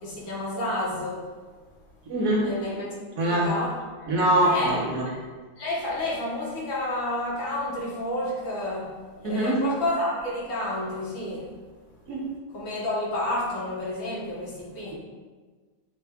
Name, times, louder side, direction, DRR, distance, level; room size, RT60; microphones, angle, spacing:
voice 1, 0.0-1.2 2.4-2.9 3.2-3.7 4.0-4.1 4.4-8.9 9.2-11.5 12.5-15.0, left 1 dB, 90° left, -5 dB, 1.9 m, -30 dB
voice 2, 2.1-2.5 3.2-3.5 4.1-5.1 9.2-9.6 12.1-12.2, right 1 dB, 60° right, -3 dB, 1.3 m, -23 dB
6.7 x 2.3 x 3.5 m, 1.4 s
omnidirectional pair, 2.1 m